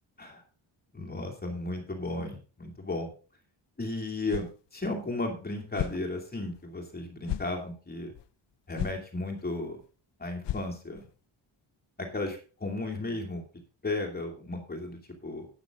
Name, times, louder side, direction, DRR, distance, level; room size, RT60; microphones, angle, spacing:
voice 1, 0.9-3.1 3.8-4.5 4.7-8.1 8.7-9.8 10.2-11.0 12.0-13.4 13.8-15.5, left 2 dB, 20° left, 2 dB, 2.6 m, -34 dB
sound 1, 4.3-4.6 5.0-5.1 5.7-6.0 6.6-6.7 7.2-7.5 8.1-8.2 8.8-9.0 9.4-9.5 9.8-9.9 10.4-11.0, left 13 dB, 65° left, 0.6 m, -34 dB
12.0 x 9.4 x 3.7 m, 0.35 s
wide cardioid pair, 175°, 47 cm